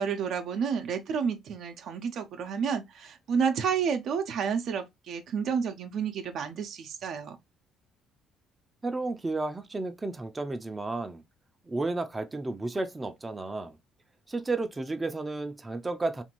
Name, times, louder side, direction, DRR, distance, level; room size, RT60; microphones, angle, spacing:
voice 1, 0.0-7.4, right 6 dB, 65° right, 0.6 m, -30 dB
voice 2, 8.8-11.2 11.7-13.8 14.3-16.2, right 2 dB, 20° right, 0.5 m, -32 dB
2.8 x 2.6 x 2.8 m
hypercardioid pair, 60°, 0 cm